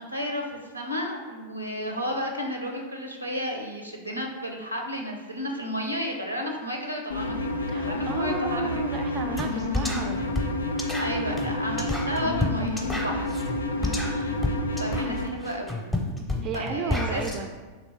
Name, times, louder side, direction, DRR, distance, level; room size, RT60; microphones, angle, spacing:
voice 1, 0.0-8.9 11.0-13.5 14.1-14.4 14.8-15.8 16.5-17.2, equal, 85° right, 2 dB, 0.5 m, -32 dB
sound 1, 7.1-15.3, left 2 dB, 75° left, 0.3 m, -29 dB
voice 2, 7.7-10.2 13.8-14.2 16.4-17.5, right 5 dB, 35° right, 6 dB, 0.3 m, -34 dB
sound 2, 9.4-9.5 9.7-17.4, left 2 dB, 5° left, 0.6 m, -30 dB
3.2 x 3.0 x 4.2 m, 1.3 s
figure-of-eight pair, 90°, 0 cm